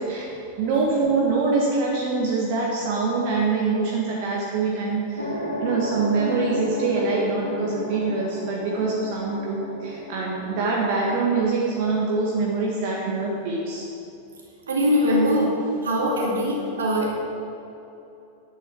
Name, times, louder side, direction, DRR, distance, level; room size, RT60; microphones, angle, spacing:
voice 1, 0.6-13.8 15.1-15.2, right 3 dB, 45° right, -3 dB, 1.6 m, -24 dB
sound 1, 5.2-13.9, left 1 dB, 85° right, 2.6 m, -34 dB
voice 2, 14.7-15.5 15.8-17.1, equal, 70° right, -2 dB, 2.4 m, -22 dB
10.5 x 8.2 x 6.1 m, 2.8 s
figure-of-eight pair, 90°, 0 cm